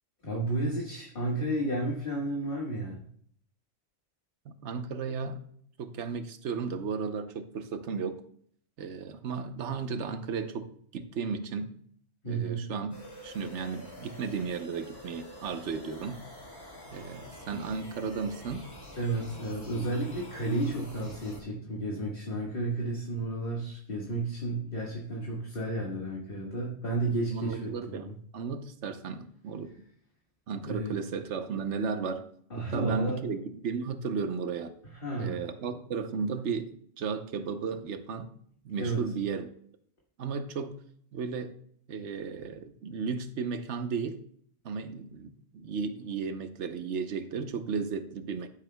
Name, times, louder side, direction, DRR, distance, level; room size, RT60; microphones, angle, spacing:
voice 1, 0.2-3.0 12.2-12.6 19.0-28.2 30.6-31.0 32.5-33.2 34.9-35.4 38.8-39.0, right 2 dB, 45° left, -3 dB, 1.7 m, -32 dB
voice 2, 4.5-5.4 5.8-8.2 8.8-11.7 12.3-13.0 13.2-16.2 16.9-18.7 27.3-29.8 30.5-32.2 32.7-34.7 35.2-38.3 38.6-39.5 40.2-40.8 41.1-41.5 41.9-44.2 44.6-48.5, right 5 dB, 70° right, 9 dB, 1.1 m, -34 dB
sound 1, 12.9-21.4, left 1 dB, 65° left, 4.1 m, -47 dB
13.5 x 7.4 x 2.2 m, 0.62 s
omnidirectional pair, 1.3 m